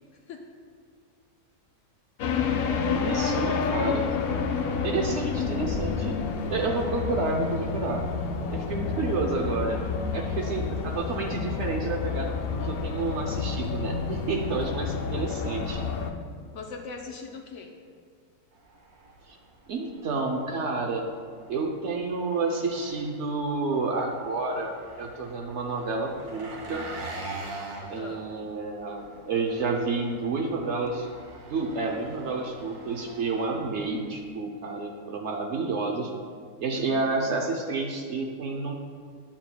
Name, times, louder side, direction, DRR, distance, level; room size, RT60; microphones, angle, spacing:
sound 1, 2.2-16.1, left 5 dB, 85° left, 0.5 m, -29 dB
voice 1, 2.6-4.1 4.8-6.2 6.5-8.0 8.5-9.8 10.1-15.8 19.3-19.4 19.7-21.0 21.5-24.7 25.0-26.9 27.9-31.1 31.5-36.1 36.6-38.7, right 3 dB, 60° right, 1 dB, 0.8 m, -30 dB
voice 2, 16.5-17.7 27.8-28.2 36.7-37.1, left 4 dB, 65° left, 3 dB, 0.8 m, -41 dB
Engine, 18.5-34.3, right 2 dB, 85° right, 1.6 m, -44 dB
8.8 x 8.3 x 2.2 m, 2.1 s
omnidirectional pair, 1.6 m